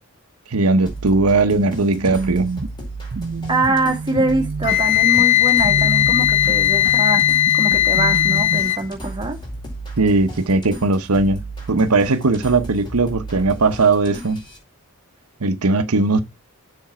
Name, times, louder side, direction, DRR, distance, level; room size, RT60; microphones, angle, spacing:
voice 1, 0.5-2.5 10.0-11.4 11.7-14.4 15.4-16.2, right 3 dB, 85° right, 0.9 m, -18 dB
sound 1, 0.9-14.6, right 2 dB, 20° left, 4.6 m, -35 dB
sound 2, 1.8-8.6, right 4 dB, 45° right, 0.5 m, -28 dB
voice 2, 3.5-7.2 7.5-9.4, right 2 dB, 20° right, 1.7 m, -23 dB
Wind instrument woodwind instrument, 4.6-8.8, left 13 dB, 55° left, 1.5 m, -17 dB
7.3 x 6.9 x 4.3 m
head